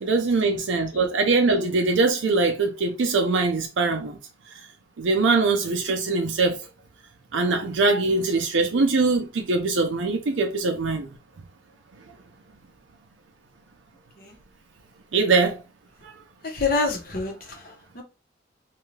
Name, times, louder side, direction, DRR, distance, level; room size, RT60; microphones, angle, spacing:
voice 1, 0.0-4.2 5.0-6.6 7.3-11.1 15.1-15.6 16.0-16.1, right 3 dB, 75° right, 0.5 m, -22 dB
voice 2, 16.4-18.0, left 3 dB, 50° left, 0.8 m, -28 dB
2.6 x 2.3 x 3.1 m
head